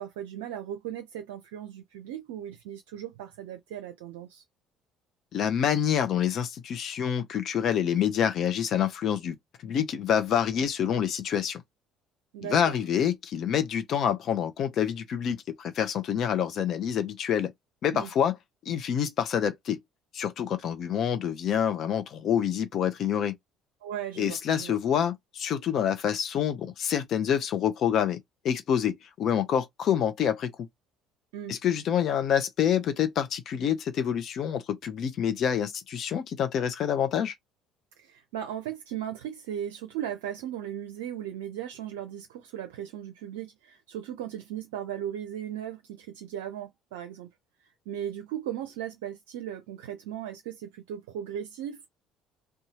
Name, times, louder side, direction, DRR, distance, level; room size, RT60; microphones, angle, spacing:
voice 1, 0.0-4.4 12.3-12.8 17.9-18.1 23.8-24.8 31.3-31.6 38.0-47.3 47.9-51.9, right 10 dB, 70° right, 0.5 m, -37 dB
voice 2, 5.3-9.4 9.6-11.6 12.4-17.5 17.8-18.3 18.7-19.8 20.1-23.4 24.2-28.2 28.4-30.5 31.5-37.3, left 9 dB, 50° left, 0.6 m, -27 dB
2.7 x 2.2 x 2.9 m
figure-of-eight pair, 55°, 0 cm